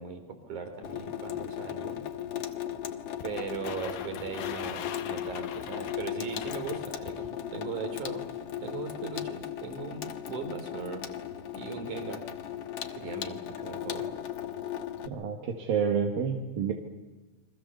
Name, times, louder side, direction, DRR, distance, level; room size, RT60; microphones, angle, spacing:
voice 1, 0.0-2.0 3.2-8.2 8.6-11.0 11.5-12.3 12.9-14.1, right 5 dB, 55° right, 7 dB, 5.0 m, -39 dB
Water tap faucet / Sink (filling or washing), 0.8-15.1, left 10 dB, 55° left, 1.8 m, -37 dB
sound 1, 3.2-7.3, left 9 dB, 90° left, 3.3 m, -42 dB
voice 2, 15.1-16.7, right 6 dB, 75° right, 2 dB, 3.6 m, -29 dB
30.0 x 24.5 x 7.0 m, 1.2 s
omnidirectional pair, 4.2 m